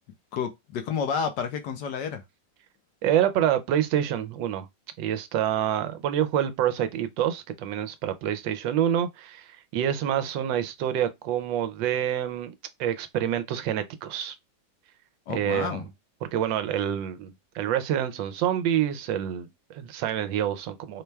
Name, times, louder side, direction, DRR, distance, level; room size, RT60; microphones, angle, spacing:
voice 1, 0.3-2.2 15.3-15.9, left 7 dB, 70° left, 1.3 m, -30 dB
voice 2, 3.0-4.7 5.0-12.5 12.8-14.3 15.3-15.8 16.3-21.0, right 10 dB, 85° right, 1.3 m, -27 dB
4.3 x 2.2 x 3.2 m
omnidirectional pair, 2.0 m